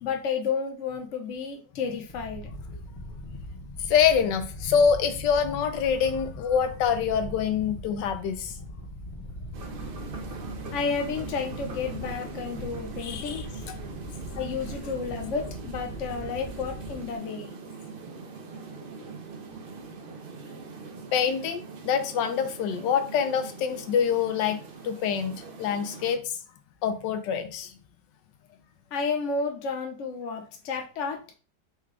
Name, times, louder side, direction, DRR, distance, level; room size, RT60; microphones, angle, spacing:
voice 1, 0.0-2.5 10.7-13.6 14.3-17.5 28.9-31.2, left 5 dB, 50° left, 1.1 m, -31 dB
sound 1, 2.1-17.2, left 1 dB, 20° left, 0.9 m, -41 dB
voice 2, 3.8-8.5 13.0-13.8 21.1-24.6 24.8-26.4 26.8-27.7, left 7 dB, 85° left, 1.2 m, -25 dB
sound 2, 9.5-26.2, right 4 dB, 70° right, 0.5 m, -41 dB
4.7 x 2.3 x 4.8 m
omnidirectional pair, 1.9 m